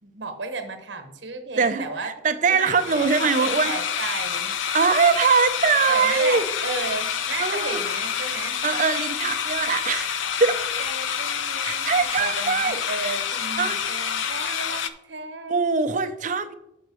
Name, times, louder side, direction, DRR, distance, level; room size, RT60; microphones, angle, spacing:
voice 1, 0.0-2.1 2.4-4.5 5.9-8.6 10.5-10.6 10.8-15.8, right 3 dB, 70° right, 7 dB, 1.0 m, -34 dB
voice 2, 1.6-3.7 4.7-6.4 7.4-7.8 8.4-10.6 11.6-13.2 13.6-13.8 15.5-16.5, right 5 dB, 40° right, 10 dB, 0.5 m, -22 dB
sound 1, 2.5-14.9, left 7 dB, 85° left, 0.5 m, -28 dB
6.3 x 5.1 x 6.1 m, 0.86 s
head